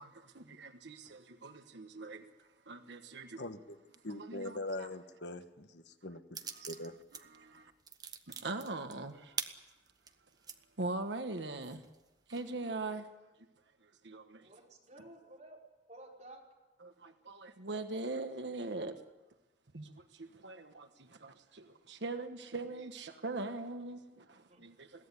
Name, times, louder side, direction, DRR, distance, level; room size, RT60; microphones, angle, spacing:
voice 1, 0.0-3.4 4.1-4.9 6.5-6.7 7.2-7.7 8.3-9.4 10.8-11.8 12.3-13.1 13.8-14.5 16.8-19.0 19.7-25.1, right 2 dB, 80° right, 8 dB, 1.3 m, -42 dB
voice 2, 3.4-3.8 4.0-6.4 6.6-6.9, left 1 dB, 75° left, 9 dB, 1.4 m, -42 dB
sound 1, 6.3-7.2 7.5-10.6 11.1-11.2 11.6-12.5, right 6 dB, 20° right, 1.2 m, -43 dB
voice 3, 14.4-15.6 15.9-16.4 24.5-24.9, right 1 dB, 40° right, -1 dB, 5.4 m, -54 dB
22.0 x 16.5 x 9.9 m, 1.1 s
head